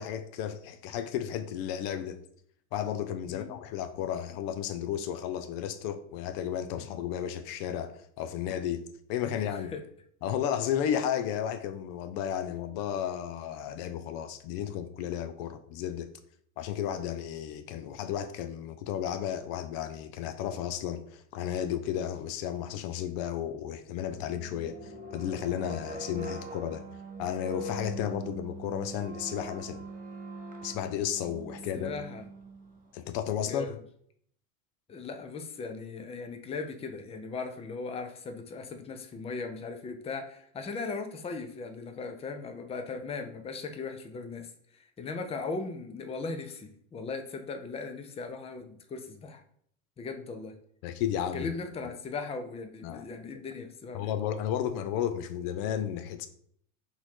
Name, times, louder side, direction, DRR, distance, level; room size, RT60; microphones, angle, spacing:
voice 1, 0.0-2.2 2.7-8.8 9.1-9.7 10.2-16.1 16.6-26.8 27.2-29.8 30.6-31.9 32.9-33.8 50.8-51.5 52.8-53.0 53.9-56.3, left 9 dB, 55° left, 0.6 m, -33 dB
voice 2, 9.3-9.9 31.7-32.3 33.4-33.8 34.9-49.4 50.0-50.5 51.3-54.1, left 4 dB, 15° left, 0.5 m, -38 dB
sound 1, 24.1-32.9, right 2 dB, 20° right, 0.8 m, -42 dB
4.0 x 2.7 x 4.5 m
hypercardioid pair, 100°, 43 cm